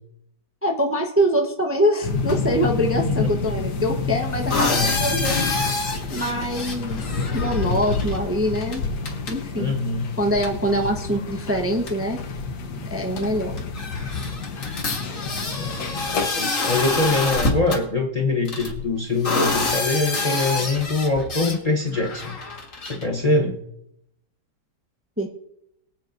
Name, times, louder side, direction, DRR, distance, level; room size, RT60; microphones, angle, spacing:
voice 1, 0.6-5.5 6.1-7.0 7.3-8.8 9.3-9.7 10.2-12.2 12.9-13.5 25.2-25.3, equal, 10° right, 1 dB, 0.8 m, -24 dB
sound 1, 2.0-16.3, left 4 dB, 80° left, 1.6 m, -29 dB
sound 2, 4.3-8.2 8.5-8.8 9.0-9.4 10.4-10.5 11.5-11.6 11.9-12.0 13.2-13.3 13.6-17.8 18.4-21.6 21.9-23.0, left 3 dB, 50° left, 2.1 m, -27 dB
voice 2, 9.5-10.1 15.6-15.8 16.3-22.4 22.8-23.6, left 3 dB, 30° left, 0 dB, 0.9 m, -23 dB
23.0 x 8.3 x 2.6 m, 0.79 s
omnidirectional pair, 1.7 m